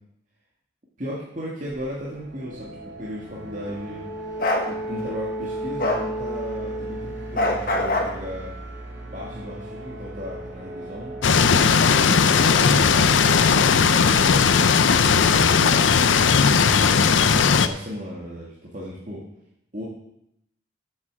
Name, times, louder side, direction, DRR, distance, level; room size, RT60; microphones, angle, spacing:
voice 1, 1.0-4.0 4.6-8.5 9.1-11.1 11.8-14.5 17.6-19.2 19.7-19.8, equal, 40° right, -5 dB, 1.9 m, -35 dB
sound 1, 1.7-14.5, right 1 dB, 70° right, 1.9 m, -35 dB
Bark, 4.4-4.7 5.8-6.0 7.4-8.1, left 2 dB, 50° left, 1.6 m, -23 dB
sound 2, 11.2-17.7, left 6 dB, 85° left, 0.6 m, -17 dB
8.1 x 7.4 x 7.5 m, 0.78 s
head